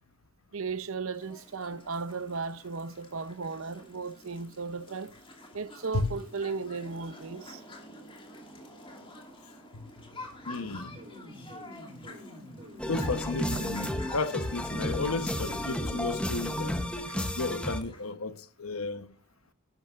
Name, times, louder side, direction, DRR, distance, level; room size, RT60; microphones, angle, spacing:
voice 1, 0.5-5.1 5.5-7.6 13.5-13.6 17.0-17.2, right 4 dB, 65° right, 0.7 m, -36 dB
sound 1, 1.1-18.1, left 1 dB, 25° left, 2.5 m, -49 dB
voice 2, 10.5-10.9 12.9-16.8 17.1-19.1, left 3 dB, 75° left, 1.0 m, -33 dB
sound 2, 10.5-17.0, equal, 30° right, 2.6 m, -47 dB
sound 3, 12.8-17.8, left 1 dB, 5° left, 0.9 m, -32 dB
11.5 x 11.0 x 2.5 m
head